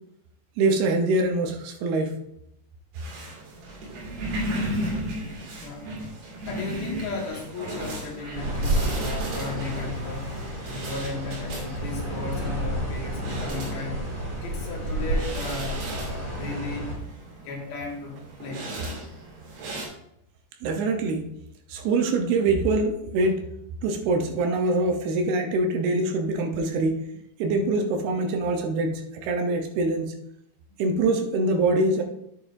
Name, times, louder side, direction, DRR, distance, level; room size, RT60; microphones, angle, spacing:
voice 1, 0.6-2.2 20.6-21.3 21.7-23.5 23.8-27.0 27.4-30.1 30.8-32.0, right 2 dB, 75° right, 3 dB, 2.4 m, -24 dB
sound 1, 2.9-19.9, right 1 dB, 60° right, 4.1 m, -36 dB
voice 2, 5.6-5.9 6.5-14.1 14.4-17.0 17.4-18.7, left 4 dB, 60° left, -3 dB, 3.4 m, -35 dB
sound 2, 8.3-16.9, right 1 dB, 15° right, 2.8 m, -30 dB
10.0 x 8.8 x 2.6 m, 0.77 s
omnidirectional pair, 5.2 m